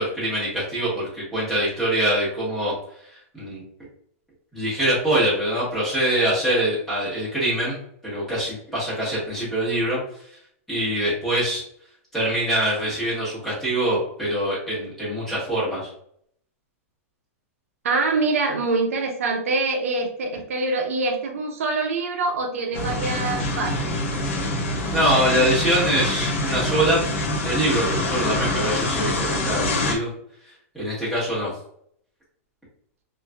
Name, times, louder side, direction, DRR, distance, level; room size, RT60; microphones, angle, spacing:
voice 1, 0.0-2.7 3.3-3.6 4.5-7.8 8.0-10.0 10.7-11.6 12.1-15.9 24.9-27.0 27.4-30.1 30.7-31.5, right 1 dB, 5° left, -10 dB, 1.1 m, -24 dB
voice 2, 17.8-24.0, right 3 dB, 70° right, 3 dB, 0.5 m, -25 dB
sound 1, 22.7-29.9, left 1 dB, 60° left, 0.6 m, -25 dB
3.1 x 2.4 x 2.2 m, 0.67 s
supercardioid pair, 180°, 8 cm